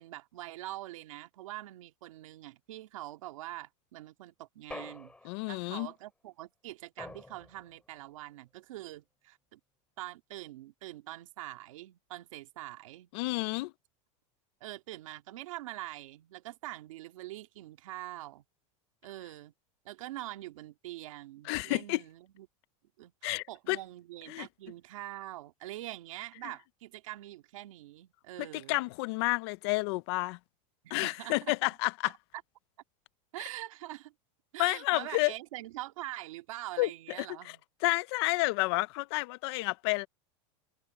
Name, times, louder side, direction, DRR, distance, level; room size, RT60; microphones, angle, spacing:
voice 1, 0.0-5.1 5.5-9.6 10.0-13.1 14.6-18.4 19.0-19.5 19.8-22.5 23.0-28.8 30.8-31.5 33.3-34.1 34.5-37.6, right 16 dB, 85° right, 2.1 m, -44 dB
sound 1, 4.7-5.7 7.0-7.8, left 2 dB, 5° left, 3.4 m, -46 dB
voice 2, 5.2-5.9 13.1-13.7 21.4-22.0 23.2-23.8 24.3-24.5 26.4-26.5 28.4-30.4 30.9-32.1 34.6-35.3 36.8-36.9 37.2-37.6 37.8-40.1, left 23 dB, 55° left, 0.6 m, -30 dB
supercardioid pair, 160°, 16 cm